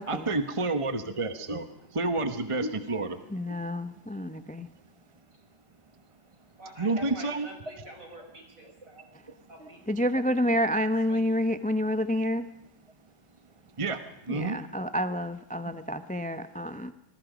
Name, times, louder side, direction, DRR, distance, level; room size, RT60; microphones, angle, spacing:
voice 1, 0.1-1.7 1.9-3.2 6.8-7.5 13.8-14.0 14.3-14.6, right 3 dB, 20° right, 9 dB, 1.0 m, -29 dB
voice 2, 1.0-1.4 1.8-1.9 2.5-3.1 6.6-9.1 9.5-9.8 11.1-11.3, right 1 dB, 50° right, 1 dB, 6.2 m, -47 dB
voice 3, 3.3-4.7 9.9-12.5 14.3-16.9, equal, 10° left, 11 dB, 0.4 m, -29 dB
27.5 x 20.5 x 5.1 m, 0.83 s
omnidirectional pair, 1.8 m